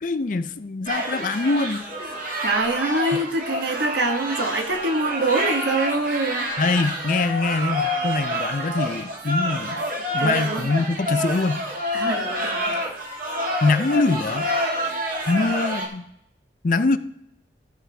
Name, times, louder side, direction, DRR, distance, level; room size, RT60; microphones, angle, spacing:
voice 1, 0.0-1.8 6.6-9.8 10.1-11.6 13.6-14.5 15.3-16.1 16.6-17.0, left 3 dB, 45° left, 12 dB, 0.5 m, -23 dB
sound 1, 0.9-15.9, equal, 50° right, 1.7 m, -28 dB
voice 2, 2.4-6.5 10.2-10.7 11.9-12.8, right 2 dB, 75° right, 4 dB, 1.4 m, -24 dB
14.5 x 6.3 x 3.3 m, 0.76 s
head